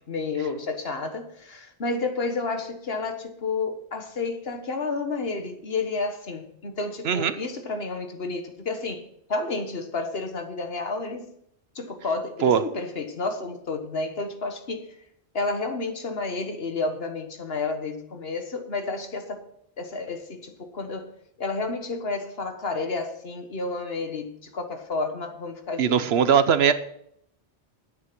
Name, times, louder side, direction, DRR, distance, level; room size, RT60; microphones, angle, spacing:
voice 1, 0.1-11.3 11.7-14.9 15.3-19.5 19.8-21.1 21.4-26.3, left 3 dB, 70° left, 6 dB, 1.6 m, -31 dB
voice 2, 7.0-7.3 12.4-12.6 25.8-26.7, right 7 dB, 75° right, 12 dB, 1.0 m, -20 dB
10.0 x 8.6 x 6.1 m, 0.72 s
omnidirectional pair, 1.1 m